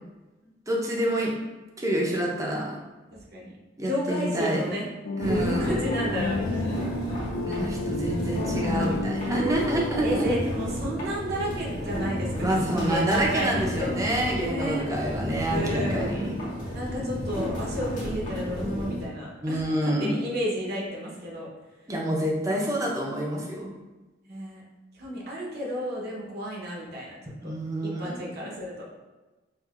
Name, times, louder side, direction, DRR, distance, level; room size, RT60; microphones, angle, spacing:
voice 1, 0.7-1.3 1.8-2.8 3.8-4.6 5.2-5.8 7.5-10.0 12.4-16.4 19.4-20.2 21.9-23.7 27.4-28.3, right 1 dB, 15° right, -2 dB, 0.6 m, -27 dB
voice 2, 3.8-4.9 5.3-6.9 10.0-12.3 12.7-13.9 14.5-14.9 15.4-16.1 16.7-21.5 24.3-24.6 24.9-27.1 27.4-27.5 27.8-28.9, equal, 55° right, -3 dB, 0.9 m, -32 dB
sound 1, 5.0-10.5, left 3 dB, 80° left, 0.4 m, -32 dB
sound 2, 5.2-19.1, left 1 dB, 45° left, 1.2 m, -32 dB
4.6 x 2.5 x 2.4 m, 1.2 s
head